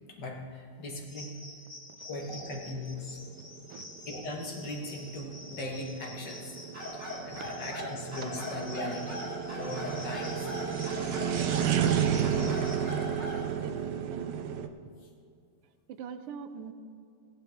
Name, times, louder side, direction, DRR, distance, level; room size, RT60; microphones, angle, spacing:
voice 1, 0.0-1.4 2.0-3.2 4.1-6.6 6.9-9.2 9.5-10.5 11.1-11.2 15.0-15.1, left 1 dB, 50° left, 0 dB, 2.0 m, -39 dB
sound 1, 1.1-12.8, left 2 dB, 20° left, 1.7 m, -48 dB
sound 2, 2.2-14.7, right 9 dB, 70° right, 1.0 m, -32 dB
sound 3, 6.7-13.5, left 1 dB, 30° right, 3.3 m, -39 dB
voice 2, 13.5-14.4 14.8-14.9 15.9-16.7, right 7 dB, 85° right, 9 dB, 1.7 m, -43 dB
15.5 x 10.5 x 3.5 m, 2.5 s
omnidirectional pair, 2.4 m